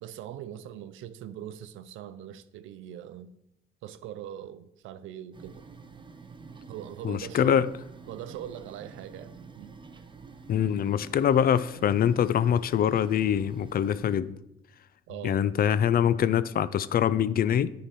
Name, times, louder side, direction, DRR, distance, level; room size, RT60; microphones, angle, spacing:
voice 1, 0.0-3.3 3.8-5.6 6.7-7.5 8.1-9.7 15.1-15.5, right 11 dB, 85° right, 0.5 m, -41 dB
sound 1, 5.3-14.2, right 4 dB, 25° right, 0.6 m, -48 dB
voice 2, 7.0-7.7 10.5-14.3 15.2-17.7, left 9 dB, 50° left, 0.4 m, -24 dB
10.0 x 3.8 x 4.2 m
cardioid pair, 90°, 20 cm